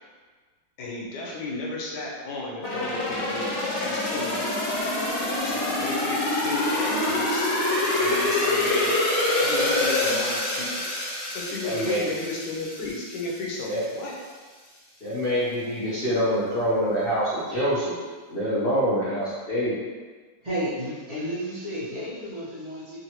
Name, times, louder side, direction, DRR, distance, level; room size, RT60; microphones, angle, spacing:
voice 1, 0.8-4.6 5.4-7.5 8.0-9.0 9.4-10.9 11.3-14.2, left 2 dB, 70° left, -3 dB, 1.2 m, -34 dB
sound 1, 2.6-13.4 13.8-13.9, left 2 dB, 50° left, 0.9 m, -26 dB
voice 2, 11.6-12.1 13.6-13.8 15.0-17.9 18.3-19.7, equal, 85° left, -10 dB, 0.5 m, -25 dB
voice 3, 20.4-23.0, equal, 50° right, -11 dB, 0.4 m, -32 dB
3.9 x 2.2 x 2.9 m, 1.5 s
omnidirectional pair, 2.0 m